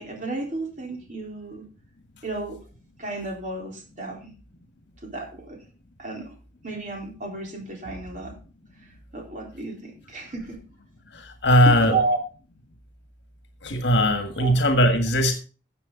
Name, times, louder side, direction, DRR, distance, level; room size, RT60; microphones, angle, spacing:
voice 1, 0.0-1.7 2.2-2.6 3.0-4.4 5.0-5.6 6.0-6.3 6.6-8.4 9.1-10.6 11.7-12.2 14.4-14.5, right 3 dB, 45° right, 0 dB, 4.0 m, -32 dB
voice 2, 11.1-12.0 13.6-15.3, equal, 70° left, 6 dB, 1.7 m, -19 dB
13.5 x 7.7 x 3.9 m, 0.36 s
head